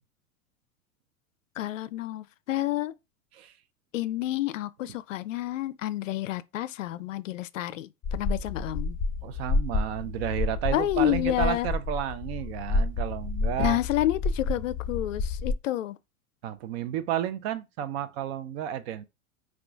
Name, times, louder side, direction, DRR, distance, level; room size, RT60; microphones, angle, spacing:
voice 1, 1.6-2.9 3.9-9.0 10.7-11.7 13.6-16.0, left 14 dB, 60° left, 0.5 m, -29 dB
sound 1, 8.0-15.5, left 3 dB, 20° left, 0.9 m, -30 dB
voice 2, 9.2-13.8 16.4-19.0, right 11 dB, 45° right, 0.6 m, -32 dB
4.8 x 2.4 x 3.5 m
figure-of-eight pair, 90°, 43 cm